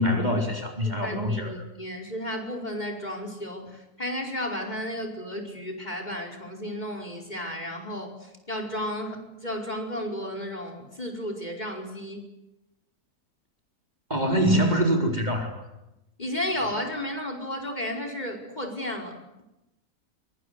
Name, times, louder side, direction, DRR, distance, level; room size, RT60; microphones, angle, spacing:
voice 1, 0.0-1.5 14.1-15.6, equal, 25° right, 3 dB, 4.2 m, -24 dB
voice 2, 0.9-12.3 16.2-19.2, left 1 dB, 25° left, 4 dB, 5.2 m, -33 dB
24.5 x 24.0 x 9.6 m, 0.90 s
omnidirectional pair, 1.6 m